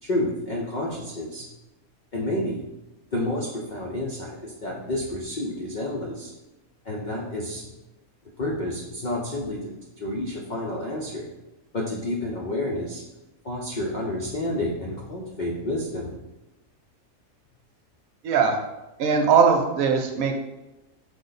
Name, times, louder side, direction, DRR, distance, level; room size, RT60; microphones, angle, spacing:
voice 1, 0.0-1.5 2.1-2.7 3.1-6.3 6.8-7.7 8.4-9.7 10.0-11.3 11.7-13.0 13.4-16.1, left 1 dB, 75° left, -2 dB, 0.4 m, -30 dB
voice 2, 18.2-18.6 19.0-20.4, right 6 dB, 80° right, 3 dB, 1.0 m, -20 dB
5.0 x 2.1 x 3.9 m, 1.0 s
omnidirectional pair, 1.5 m